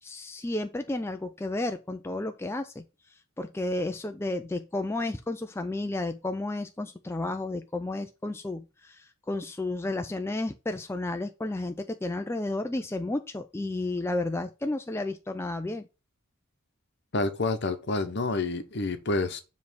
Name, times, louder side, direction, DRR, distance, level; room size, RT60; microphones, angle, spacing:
voice 1, 0.0-2.8 3.4-15.9, left 2 dB, 10° left, 0.4 m, -32 dB
voice 2, 17.1-19.4, left 3 dB, 50° left, 0.9 m, -28 dB
7.2 x 3.2 x 6.2 m
head